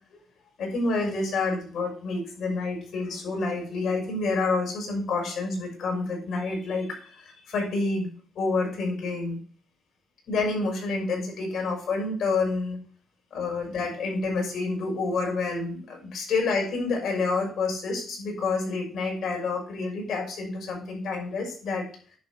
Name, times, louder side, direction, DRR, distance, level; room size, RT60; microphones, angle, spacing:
voice 1, 0.6-8.1 8.3-9.4 10.3-12.8 13.3-21.8, left 3 dB, 70° left, 0 dB, 6.1 m, -28 dB
10.5 x 4.4 x 7.8 m, 0.43 s
cardioid pair, 90°, 0 cm